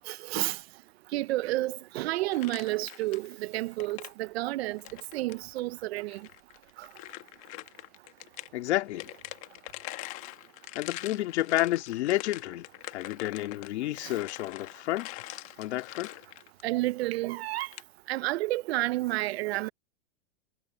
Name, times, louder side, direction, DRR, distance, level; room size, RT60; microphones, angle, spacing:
voice 1, 0.1-0.6 1.1-4.8 5.1-6.3 6.8-6.9 14.0-14.1 16.6-17.7 18.1-19.7, right 18 dB, 60° right, 0.7 m, -30 dB
sound 1, 2.3-3.4 3.7-4.1 4.8-5.4 6.1-8.5 8.9-16.7 17.5-17.8, left 19 dB, 35° left, 1.8 m, -44 dB
voice 2, 8.5-9.1 10.7-12.7 12.9-15.2 15.6-16.1, left 15 dB, 65° left, 3.0 m, -30 dB
supercardioid pair, 145°, 36 cm